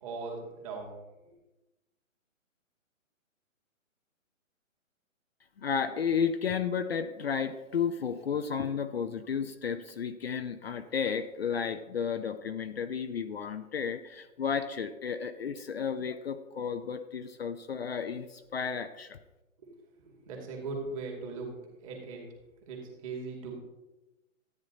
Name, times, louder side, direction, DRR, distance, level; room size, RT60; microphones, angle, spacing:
voice 1, 0.0-0.9 1.2-1.3 19.6-19.7 20.0-21.5 21.8-22.2 22.7-23.5, right 4 dB, 25° right, 0 dB, 2.6 m, -39 dB
voice 2, 5.6-19.2, left 7 dB, 50° left, 9 dB, 0.7 m, -33 dB
13.5 x 9.5 x 4.0 m, 1.0 s
hypercardioid pair, 165°, 40 cm